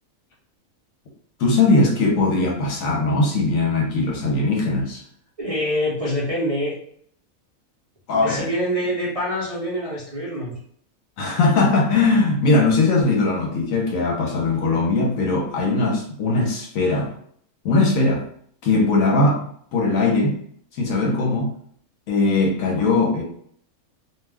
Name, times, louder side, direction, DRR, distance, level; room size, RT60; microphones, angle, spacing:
voice 1, 1.4-5.0 8.1-8.5 11.2-17.1 17.6-18.2 18.6-19.4 19.7-20.4 20.7-21.5 22.1-23.2, left 3 dB, 75° left, 0 dB, 1.1 m, -20 dB
voice 2, 5.4-6.7 8.1-10.5, equal, 40° right, -8 dB, 0.5 m, -25 dB
2.5 x 2.3 x 3.3 m, 0.63 s
omnidirectional pair, 1.5 m